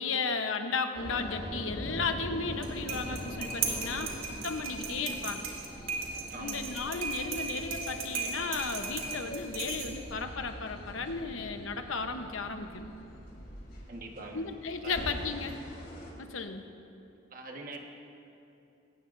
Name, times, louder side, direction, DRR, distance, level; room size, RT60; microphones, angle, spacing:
voice 1, 0.0-4.1 4.4-5.4 6.4-12.9 14.3-15.6 16.2-16.6, left 4 dB, 85° left, 6 dB, 1.0 m, -34 dB
sound 1, 0.9-16.1, equal, 50° left, 3.0 m, -43 dB
sound 2, 2.5-10.2, right 5 dB, 90° right, 2.6 m, -37 dB
voice 2, 6.3-6.6 13.9-14.4 14.8-15.0 17.3-17.8, right 2 dB, 45° right, 1 dB, 1.5 m, -43 dB
20.5 x 18.0 x 2.7 m, 2.7 s
head